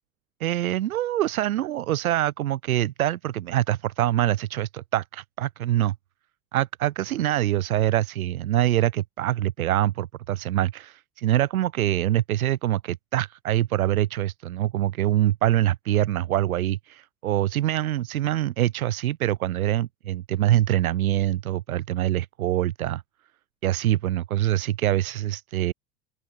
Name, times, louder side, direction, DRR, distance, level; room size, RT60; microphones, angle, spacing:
voice 1, 0.4-5.9 6.5-23.0 23.6-25.7, right 13 dB, 65° right, 5.5 m, -24 dB
open air
figure-of-eight pair, 75°, 46 cm